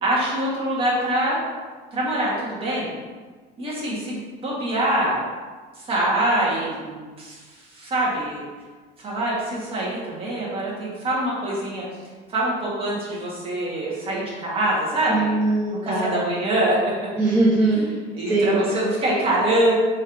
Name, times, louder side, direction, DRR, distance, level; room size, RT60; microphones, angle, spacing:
voice 1, 0.0-1.4 1.9-2.9 3.6-5.1 5.7-8.4 9.0-11.8 12.3-15.3 15.7-16.8 18.1-19.7, right 1 dB, 35° right, -5 dB, 1.3 m, -24 dB
voice 2, 15.1-16.2 17.2-17.9 18.3-18.6, right 2 dB, 15° right, -8 dB, 0.6 m, -21 dB
4.5 x 3.1 x 2.5 m, 1.4 s
cardioid pair, 135°, 17 cm